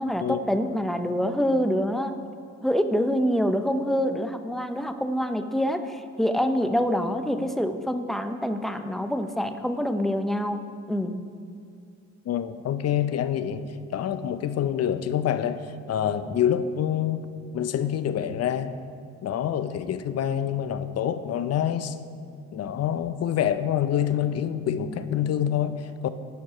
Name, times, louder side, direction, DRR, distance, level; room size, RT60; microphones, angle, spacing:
voice 1, 0.0-2.1 2.6-10.6 10.9-11.2, equal, ahead, 8 dB, 0.5 m, -26 dB
voice 2, 12.3-17.3 17.5-18.7 19.2-22.0 22.5-26.1, left 9 dB, 55° left, 12 dB, 0.5 m, -26 dB
11.0 x 4.6 x 5.6 m, 2.3 s
cardioid pair, 90°, 30 cm